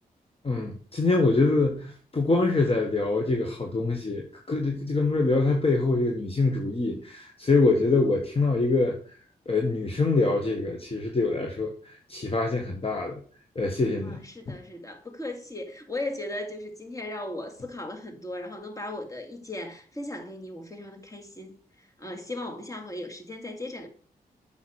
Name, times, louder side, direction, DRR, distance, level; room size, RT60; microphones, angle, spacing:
voice 1, 0.4-9.0 9.4-13.2 13.5-14.2, left 3 dB, 35° left, 1.5 m, -25 dB
voice 2, 14.0-23.9, left 1 dB, 20° left, 2.3 m, -37 dB
8.2 x 5.9 x 4.7 m
cardioid pair, 55°, 16 cm